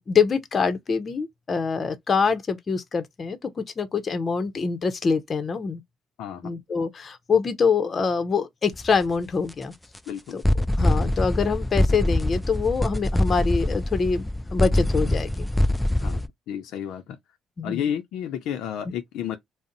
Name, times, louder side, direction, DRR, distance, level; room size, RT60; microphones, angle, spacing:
voice 1, 0.0-5.8 6.4-9.7 10.3-10.4 10.8-15.5 17.6-17.9, left 5 dB, 40° left, 0.7 m, -25 dB
voice 2, 6.2-6.5 10.1-10.4 16.0-16.2 16.5-17.2 17.6-19.4, left 9 dB, 75° left, 0.5 m, -31 dB
sound 1, 8.7-9.0 9.5-9.6 10.0-10.1 10.4-16.3, left 1 dB, 5° left, 0.3 m, -24 dB
2.5 x 2.1 x 3.8 m
supercardioid pair, 65°, 0 cm